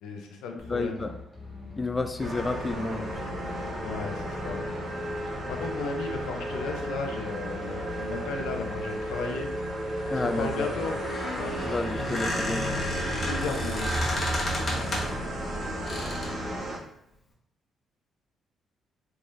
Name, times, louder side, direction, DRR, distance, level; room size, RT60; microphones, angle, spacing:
voice 1, 0.0-1.1 3.8-5.0 5.5-9.5 10.1-11.0 11.3-11.6 13.1-13.9, left 4 dB, 90° left, 3 dB, 0.6 m, -35 dB
voice 2, 0.5-1.1 1.8-3.1 10.1-10.7 11.6-12.8 14.7-14.9, left 3 dB, 25° left, 8 dB, 0.3 m, -31 dB
sound 1, 0.6-16.6, left 3 dB, 5° left, 1.2 m, -44 dB
sound 2, 2.2-16.8, right 1 dB, 55° right, 1.0 m, -34 dB
Squeak, 10.9-15.3 15.9-16.4, left 1 dB, 40° left, 1.1 m, -31 dB
3.5 x 3.1 x 2.6 m, 0.75 s
cardioid pair, 90°, 0 cm